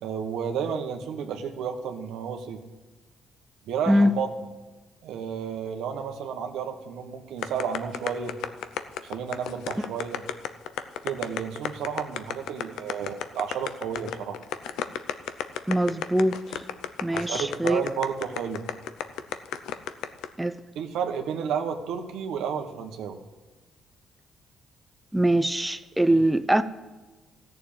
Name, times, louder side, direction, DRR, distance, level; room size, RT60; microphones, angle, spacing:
voice 1, 0.0-2.6 3.7-4.3 5.0-8.3 9.0-10.2 11.0-14.4 17.1-18.6 20.7-23.2, right 7 dB, 85° right, 1.4 m, -31 dB
sound 1, 7.4-20.3, left 10 dB, 90° left, 0.7 m, -32 dB
voice 2, 15.7-16.6 17.0-17.8 20.4-20.5 25.1-26.6, right 1 dB, 5° right, 0.6 m, -22 dB
14.5 x 6.8 x 8.8 m
cardioid pair, 90°, 0 cm